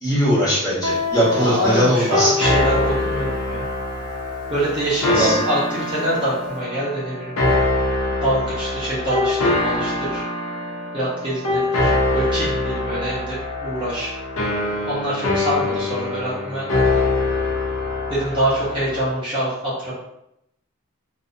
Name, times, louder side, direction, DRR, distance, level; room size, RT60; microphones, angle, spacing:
voice 1, 0.0-2.3 5.1-5.3, equal, 15° left, -9 dB, 1.0 m, -19 dB
Guitar, 0.8-6.3, left 3 dB, 80° right, 0.4 m, -32 dB
sound 1, 1.1-19.1, left 2 dB, 70° left, 0.6 m, -24 dB
voice 2, 1.4-3.6 4.5-7.6 8.2-10.2 10.9-14.1 14.9-17.0 18.1-19.9, right 1 dB, 20° right, -9 dB, 0.6 m, -25 dB
2.6 x 2.1 x 2.5 m, 0.80 s
head